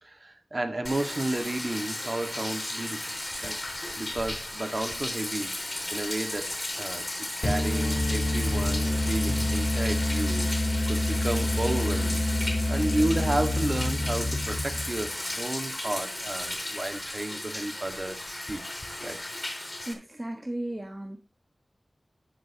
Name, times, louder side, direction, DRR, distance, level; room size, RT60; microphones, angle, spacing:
voice 1, 0.0-3.1 3.4-3.6 4.0-5.6 5.9-7.1 7.4-10.4 10.9-12.3 12.7-18.7 19.0-19.2, right 2 dB, 40° right, 2.0 m, -32 dB
Bathtub (filling or washing), 0.8-19.9, left 1 dB, 25° left, 3.8 m, -35 dB
sound 1, 7.4-15.1, left 1 dB, 75° left, 3.2 m, -27 dB
voice 2, 19.9-21.2, right 1 dB, 20° right, 1.5 m, -35 dB
13.5 x 8.3 x 3.0 m
wide cardioid pair, 80°, 0 cm